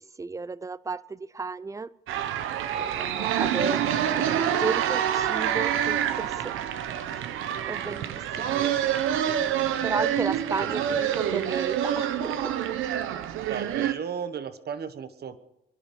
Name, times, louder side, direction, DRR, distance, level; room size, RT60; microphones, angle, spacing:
voice 1, 0.0-1.9 2.7-3.8 4.1-6.5 7.7-8.7 9.8-12.5, right 4 dB, 15° right, 0.5 m, -34 dB
sound 1, 2.1-13.9, right 10 dB, 90° right, 0.9 m, -27 dB
voice 2, 4.2-4.9 10.6-11.0 13.5-15.4, right 7 dB, 55° right, 1.3 m, -36 dB
23.0 x 11.0 x 5.2 m
cardioid pair, 90°, 20 cm